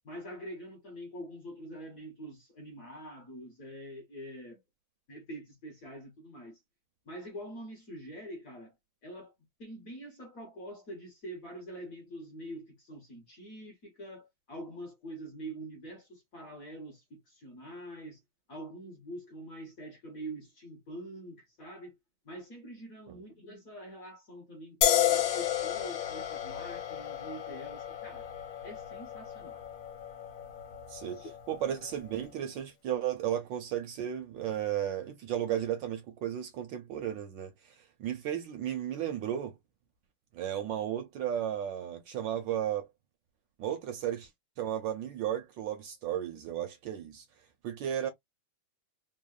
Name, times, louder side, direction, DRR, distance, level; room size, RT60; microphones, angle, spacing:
voice 1, 0.0-4.6 5.1-6.6 7.1-8.7 9.0-9.3 9.6-18.2 18.5-22.0 22.2-28.3 28.6-29.7 31.1-31.3, right 1 dB, 55° left, 1.0 m, -45 dB
sound 1, 24.8-32.1, left 11 dB, 70° left, 1.3 m, -33 dB
voice 2, 31.5-37.7 38.0-39.6 40.3-42.9 43.6-44.3 44.6-47.2 47.6-48.1, right 10 dB, 75° right, 1.1 m, -34 dB
3.5 x 2.0 x 2.3 m
omnidirectional pair, 2.3 m